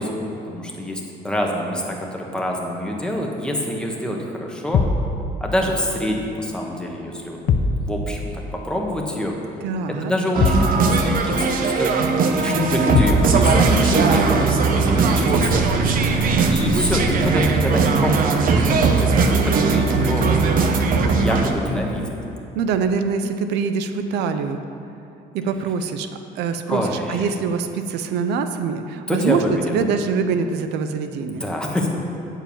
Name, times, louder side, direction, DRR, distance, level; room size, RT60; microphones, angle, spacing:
voice 1, 0.0-4.8 5.4-7.4 7.8-9.3 10.0-11.9 12.4-15.6 16.2-20.2 21.2-22.2 26.7-27.3 29.1-29.7 31.3-31.9, left 1 dB, 5° left, 0 dB, 1.3 m, -25 dB
sound 1, 4.7-5.1 7.5-7.8 10.4-10.8 12.9-13.3, left 4 dB, 50° left, 0.6 m, -19 dB
voice 2, 9.6-10.1 22.5-24.6 25.3-26.1 26.4-31.4, right 5 dB, 85° right, 8 dB, 0.5 m, -24 dB
sound 2, 10.3-21.5, right 4 dB, 55° right, 0.8 m, -19 dB
8.9 x 4.6 x 7.1 m, 2.9 s
cardioid pair, 110°, 17 cm